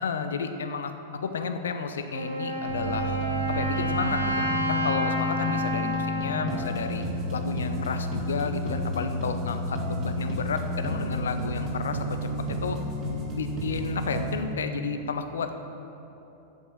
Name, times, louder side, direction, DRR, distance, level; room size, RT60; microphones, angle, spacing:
voice 1, 0.0-3.2 3.5-7.1 7.3-12.3 12.6-12.8 13.3-15.5, left 5 dB, 65° left, 8 dB, 0.7 m, -31 dB
Wind instrument woodwind instrument, 2.1-7.9, equal, 65° right, 1.0 m, -31 dB
sound 1, 2.7-14.3, right 1 dB, 35° right, 2.1 m, -31 dB
8.0 x 7.8 x 7.5 m, 3.0 s
figure-of-eight pair, 90°, 0 cm